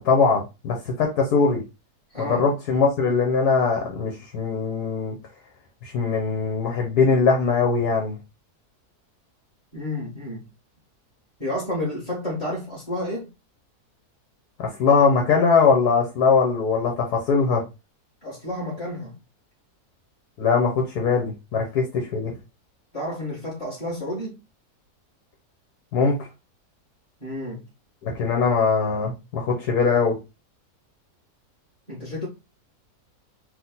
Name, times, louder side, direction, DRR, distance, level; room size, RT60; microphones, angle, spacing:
voice 1, 0.0-1.6 2.2-5.1 5.8-8.2 14.6-17.6 20.4-22.3 25.9-26.1 28.0-30.2, left 5 dB, 75° left, 1.4 m, -21 dB
voice 2, 2.1-2.5 9.7-10.4 11.4-13.3 18.2-19.1 22.9-24.4 27.2-27.6 31.9-32.3, left 1 dB, 20° left, 1.8 m, -30 dB
3.7 x 2.6 x 3.9 m
omnidirectional pair, 1.7 m